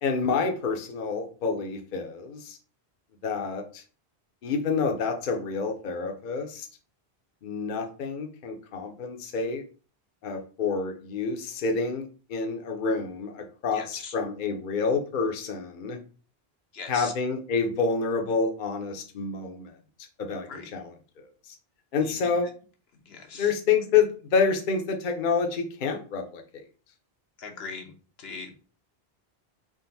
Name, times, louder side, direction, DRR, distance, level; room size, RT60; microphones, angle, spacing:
voice 1, 0.0-2.6 3.2-3.8 4.4-6.7 7.4-9.6 10.2-16.0 16.9-19.7 20.2-21.5 21.9-22.5 23.3-26.6, left 5 dB, 55° left, 4 dB, 0.8 m, -28 dB
voice 2, 13.7-14.1 16.7-17.1 20.5-20.7 22.0-22.3 23.1-23.5 27.4-27.9 28.2-28.5, left 5 dB, 75° left, 3 dB, 1.0 m, -40 dB
3.7 x 2.5 x 3.9 m, 0.38 s
omnidirectional pair, 1.1 m